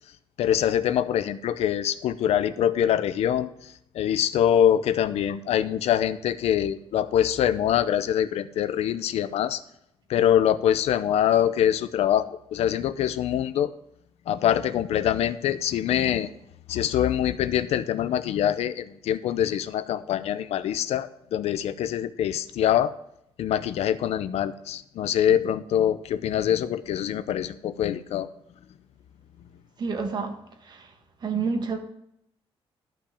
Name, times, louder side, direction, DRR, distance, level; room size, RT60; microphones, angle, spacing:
voice 1, 0.4-9.6 10.1-13.7 14.3-16.3 16.7-22.9 23.4-28.3 31.4-31.5, left 10 dB, 85° left, 0.6 m, -24 dB
voice 2, 29.8-30.4 30.6-30.9 31.2-31.8, right 5 dB, 45° right, 1.4 m, -28 dB
12.5 x 5.8 x 5.0 m
cardioid pair, 155°, 10 cm